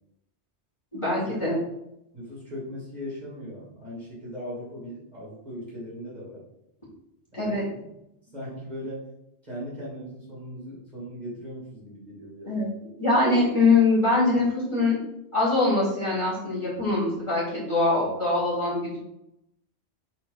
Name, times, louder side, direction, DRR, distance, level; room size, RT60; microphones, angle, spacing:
voice 1, 0.9-1.6 7.3-7.6 12.4-12.7 13.0-15.0 15.3-19.0, left 3 dB, 25° left, -8 dB, 2.9 m, -23 dB
voice 2, 2.1-6.4 7.4-7.9 8.3-9.1 9.4-12.7, equal, 40° right, -7 dB, 2.7 m, -39 dB
7.2 x 4.3 x 4.1 m, 0.85 s
omnidirectional pair, 1.2 m